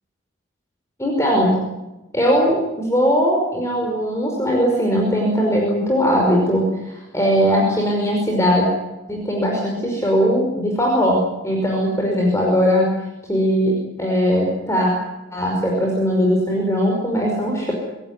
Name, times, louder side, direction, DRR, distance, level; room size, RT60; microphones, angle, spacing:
voice 1, 1.0-1.6 2.1-8.7 9.1-12.9 13.3-14.9 15.3-17.7, equal, 15° left, -1 dB, 5.4 m, -19 dB
25.5 x 16.5 x 9.7 m, 1.0 s
head